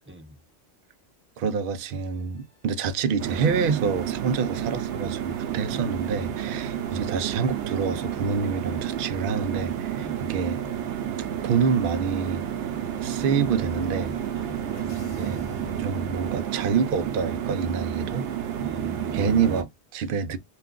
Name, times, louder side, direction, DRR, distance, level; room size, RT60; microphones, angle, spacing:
voice 1, 0.1-0.4 6.5-6.7 10.0-10.2 14.3-14.6 18.6-19.6, right 1 dB, 15° right, 0.4 m, -40 dB
voice 2, 1.4-10.6 11.2-12.5 13.0-14.2 15.2-15.4 15.8-18.3 19.1-20.4, right 6 dB, 60° right, 0.7 m, -27 dB
sound 1, 2.0-16.1, right 1 dB, 15° left, 0.9 m, -48 dB
sound 2, 3.2-19.6, right 10 dB, 90° right, 0.9 m, -31 dB
sound 3, 11.8-16.8, right 1 dB, 50° left, 0.9 m, -47 dB
2.5 x 2.2 x 3.6 m
omnidirectional pair, 1.1 m